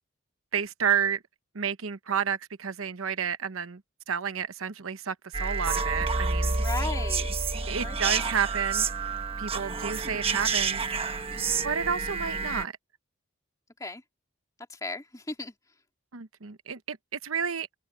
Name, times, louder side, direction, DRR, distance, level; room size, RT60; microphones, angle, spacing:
voice 1, 0.5-1.2 1.5-3.8 4.1-6.6 7.7-8.9 9.4-10.8 11.6-12.7 16.1-17.7, right 7 dB, 80° right, 0.9 m, -30 dB
sound 1, 5.3-12.6, right 4 dB, 25° right, 1.1 m, -29 dB
voice 2, 6.6-8.3 11.3-11.7 13.8-14.0 14.7-15.5, left 2 dB, 15° left, 3.0 m, -37 dB
head